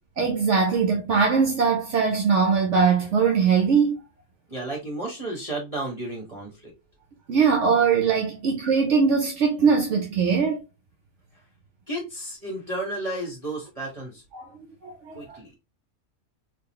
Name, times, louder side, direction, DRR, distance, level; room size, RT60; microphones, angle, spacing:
voice 1, 0.2-4.0 7.3-10.6 14.3-14.5 14.8-15.6, right 5 dB, 65° right, 0.9 m, -21 dB
voice 2, 4.5-6.7 11.9-14.2 15.1-15.5, right 1 dB, 25° right, 1.2 m, -32 dB
3.7 x 2.5 x 3.0 m
omnidirectional pair, 1.4 m